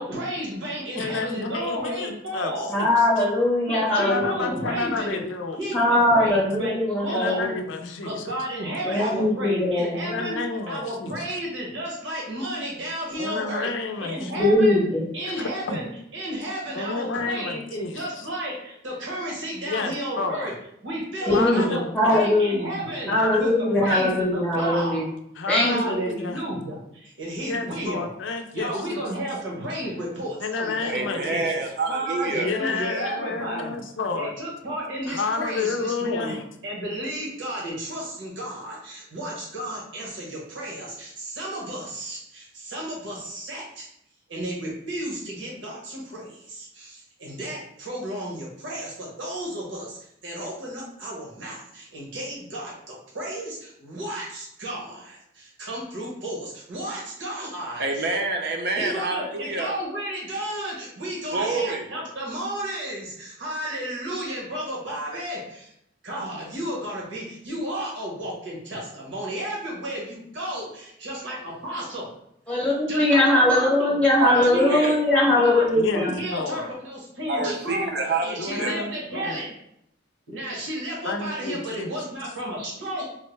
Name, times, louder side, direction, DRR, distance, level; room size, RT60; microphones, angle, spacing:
voice 1, 0.0-2.7 3.7-5.2 5.6-6.8 7.0-7.5 8.0-10.4 10.7-13.7 14.0-14.8 15.1-20.5 20.8-25.1 25.6-28.1 28.5-30.9 31.2-31.5 31.9-33.7 34.1-36.4 36.6-43.9 44.3-50.0 50.2-58.1 58.8-65.7 66.0-72.1 72.9-73.9 74.2-75.7 75.9-77.9 78.2-79.5 80.3-83.1, right 1 dB, 80° right, -4 dB, 1.2 m, -32 dB
voice 2, 1.0-2.9 3.9-6.1 7.1-8.1 10.0-11.4 13.2-14.5 15.2-15.8 16.7-18.3 19.6-20.5 21.3-22.3 23.1-24.0 25.4-26.4 27.3-29.0 30.4-31.5 32.3-34.3 34.7-34.8 35.1-36.4 75.7-76.7 78.4-79.4 81.0-81.9, left 4 dB, 80° left, 5 dB, 0.4 m, -30 dB
voice 3, 2.7-4.6 5.7-7.8 8.8-10.2 14.4-15.1 21.2-22.7 23.1-25.1 25.5-25.9 72.5-76.2, left 1 dB, 5° left, -4 dB, 0.9 m, -21 dB
voice 4, 30.9-32.5 57.8-59.7 61.3-61.9 74.2-75.0 77.3-78.7, right 3 dB, 55° right, 3 dB, 0.5 m, -27 dB
3.7 x 2.1 x 3.2 m, 0.77 s
head